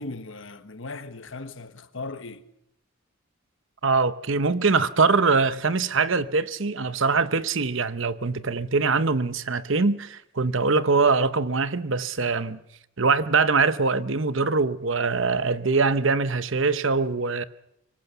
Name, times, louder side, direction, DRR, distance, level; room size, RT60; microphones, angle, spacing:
voice 1, 0.0-2.4, left 3 dB, 65° left, 1.3 m, -37 dB
voice 2, 3.8-12.6 13.0-17.4, right 4 dB, 65° right, 0.9 m, -23 dB
24.5 x 18.5 x 6.9 m
head